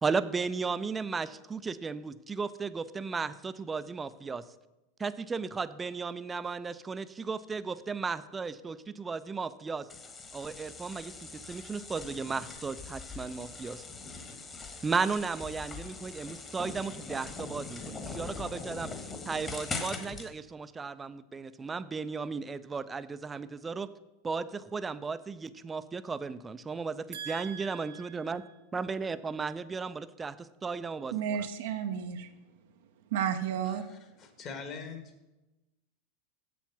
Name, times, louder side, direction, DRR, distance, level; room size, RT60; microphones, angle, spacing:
voice 1, 0.0-4.4 5.0-9.9 10.3-13.8 14.8-23.9 24.2-28.4 28.7-31.5, right 4 dB, 20° right, 14 dB, 0.5 m, -35 dB
sound 1, 9.9-20.3, left 4 dB, 25° left, 1.4 m, -42 dB
voice 2, 27.1-28.2 31.1-32.3 33.1-33.8, right 8 dB, 70° right, 6 dB, 0.7 m, -33 dB
voice 3, 33.6-35.1, left 5 dB, 45° left, 6 dB, 1.8 m, -43 dB
7.1 x 7.0 x 6.0 m, 1.0 s
hypercardioid pair, 95°, 0 cm